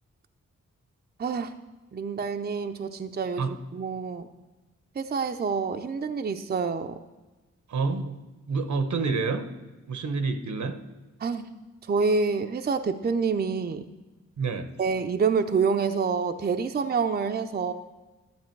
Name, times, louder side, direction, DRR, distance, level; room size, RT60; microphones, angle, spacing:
voice 1, 1.2-1.5 1.9-4.3 5.0-7.0 11.2-11.5 11.9-13.8 14.8-17.7, right 5 dB, 35° right, 7 dB, 0.5 m, -27 dB
voice 2, 7.7-8.2 8.5-9.5 9.9-10.8 14.4-14.7, right 4 dB, 75° right, 9 dB, 1.0 m, -28 dB
12.0 x 7.9 x 4.5 m, 1.2 s
wide cardioid pair, 95°, 29 cm